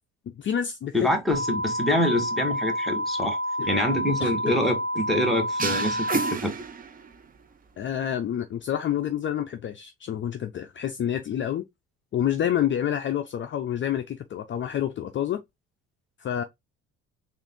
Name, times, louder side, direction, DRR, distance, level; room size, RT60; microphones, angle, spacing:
voice 1, 0.3-1.1 1.5-1.6 3.6-3.8 4.2-4.5 7.8-11.7 12.1-15.4 16.2-16.4, left 10 dB, 40° left, 0.5 m, -28 dB
voice 2, 0.9-3.4 3.7-6.5, left 1 dB, ahead, 1.4 m, -25 dB
sound 1, 1.3-6.3, equal, 90° right, 1.1 m, -29 dB
sound 2, 5.6-7.4, right 5 dB, 25° right, 0.6 m, -31 dB
3.7 x 2.5 x 3.6 m
cardioid pair, 100°, 32 cm